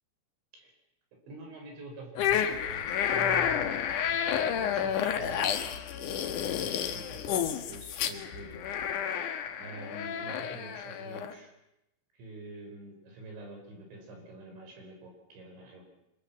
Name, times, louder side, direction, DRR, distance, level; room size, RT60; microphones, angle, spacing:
voice 1, 1.3-3.8 4.1-8.6 8.9-9.3 9.6-11.5 12.1-15.8, right 2 dB, 65° right, 2 dB, 7.3 m, -46 dB
sound 1, 2.2-11.3, left 9 dB, 90° left, 1.8 m, -30 dB
26.0 x 23.0 x 7.4 m, 0.88 s
omnidirectional pair, 5.9 m